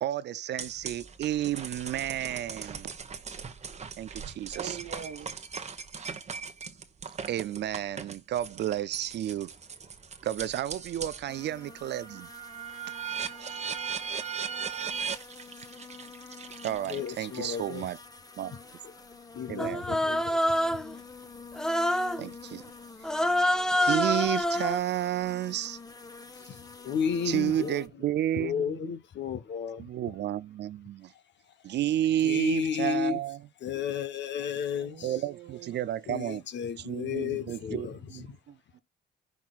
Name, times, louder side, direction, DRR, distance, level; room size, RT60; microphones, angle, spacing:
voice 1, 0.0-2.9 4.0-4.8 7.3-9.5 10.2-12.3 13.4-13.6 16.6-18.0 18.4-18.5 19.5-19.8 22.2-22.6 23.8-25.8 27.3-28.9 29.8-31.1 31.6-33.4 35.0-36.4 36.9-38.2, right 12 dB, 60° right, 0.4 m, -31 dB
sound 1, 0.6-11.3 11.7-17.4, right 6 dB, 35° right, 1.1 m, -39 dB
voice 2, 4.5-5.4 34.7-35.8 38.5-38.8, right 8 dB, 80° right, 1.2 m, -44 dB
sound 2, 11.3-27.9, left 4 dB, 20° left, 1.2 m, -49 dB
voice 3, 16.9-17.9 18.5-20.6 26.3-28.1 28.3-29.9 31.1-31.2 32.1-33.2 33.6-35.2 36.1-38.4, left 7 dB, 65° left, 1.1 m, -33 dB
Human voice, 19.6-20.9 21.6-22.2 23.0-24.8, left 1 dB, 5° left, 0.6 m, -26 dB
15.0 x 6.0 x 2.4 m
cardioid pair, 90°, 20 cm